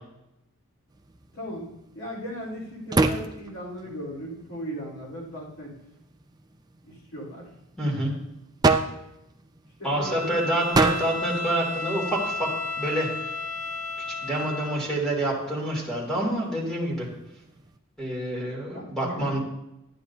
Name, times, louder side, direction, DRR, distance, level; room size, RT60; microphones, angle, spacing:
sound 1, 0.9-17.8, right 3 dB, 20° right, 0.4 m, -32 dB
voice 1, 1.3-1.7 1.9-5.7 6.8-7.5 9.8-10.8 18.7-19.4, equal, 70° left, -6 dB, 3.9 m, -37 dB
voice 2, 7.8-8.1 9.8-12.5 12.8-13.1 14.2-17.1 18.0-19.4, right 1 dB, 5° left, -4 dB, 2.8 m, -27 dB
Bowed string instrument, 10.0-14.9, left 3 dB, 35° left, 0.9 m, -33 dB
12.0 x 9.4 x 2.8 m, 0.87 s
head